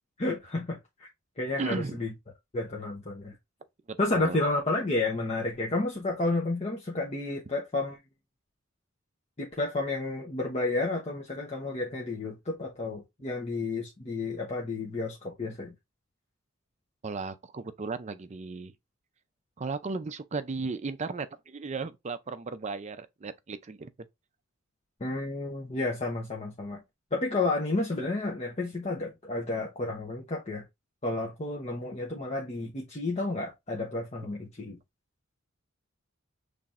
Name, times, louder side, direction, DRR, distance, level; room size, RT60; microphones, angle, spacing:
voice 1, 0.2-1.1 1.4-2.1 2.5-3.3 4.0-8.0 9.4-15.7 25.0-26.8 27.1-30.6 31.0-34.8, left 2 dB, 30° left, 0.9 m, -31 dB
voice 2, 1.6-2.0 3.9-4.4 17.0-18.7 19.6-23.9, right 4 dB, 35° right, 0.5 m, -35 dB
5.8 x 3.4 x 2.5 m
head